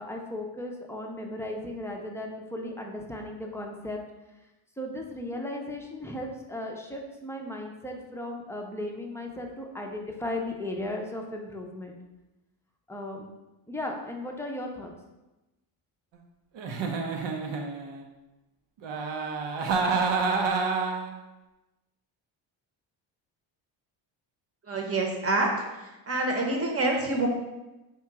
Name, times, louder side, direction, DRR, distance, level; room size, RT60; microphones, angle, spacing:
voice 1, 0.0-4.0 4.8-12.0 12.9-13.3 13.7-14.9, left 1 dB, 5° left, 1 dB, 0.6 m, -36 dB
Giggle, 16.6-18.1 18.8-21.1, right 4 dB, 65° right, 0.8 m, -28 dB
voice 2, 24.7-25.5 26.1-27.3, right 2 dB, 30° right, 1 dB, 1.0 m, -26 dB
3.5 x 3.0 x 4.7 m, 1.0 s
cardioid pair, 80°, 48 cm